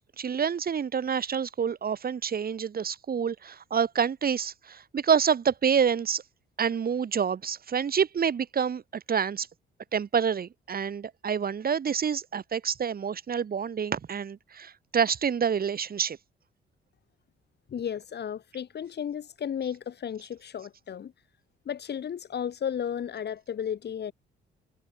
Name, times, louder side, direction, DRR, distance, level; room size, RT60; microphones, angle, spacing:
voice 1, 0.0-6.2 6.6-9.5 9.9-16.2, right 7 dB, 50° right, 5.8 m, -27 dB
voice 2, 17.7-21.1 21.6-24.1, left 8 dB, 55° left, 5.0 m, -34 dB
cardioid pair, 90°, 20 cm